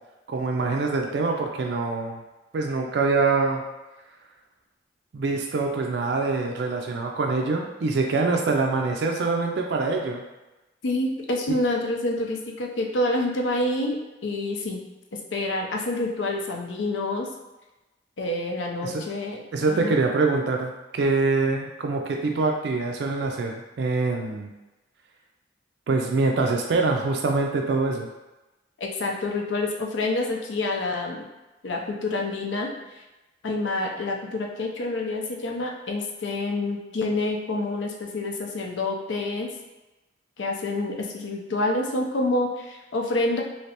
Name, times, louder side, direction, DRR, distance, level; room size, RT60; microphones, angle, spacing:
voice 1, 0.3-2.2 2.5-3.6 5.1-10.2 18.8-19.1 19.5-24.5 25.9-28.1, right 3 dB, 65° right, 2 dB, 0.4 m, -24 dB
voice 2, 10.8-14.8 15.3-17.3 18.2-20.0 28.8-31.2 31.6-32.7 33.4-39.5 40.4-43.4, left 2 dB, 85° left, 1 dB, 0.6 m, -27 dB
3.2 x 2.9 x 2.9 m, 1.0 s
head